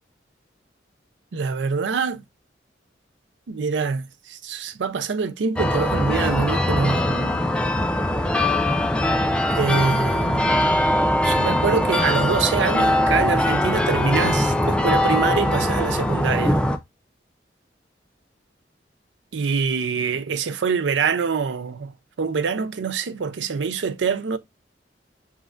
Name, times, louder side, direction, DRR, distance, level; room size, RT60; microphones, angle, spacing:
voice 1, 1.3-2.2 3.5-7.5 9.5-10.7 11.2-16.6 19.3-21.9 22.2-24.4, right 5 dB, 85° right, 0.5 m, -25 dB
sound 1, 5.6-16.8, left 1 dB, 5° left, 0.4 m, -21 dB
7.2 x 2.5 x 2.4 m
head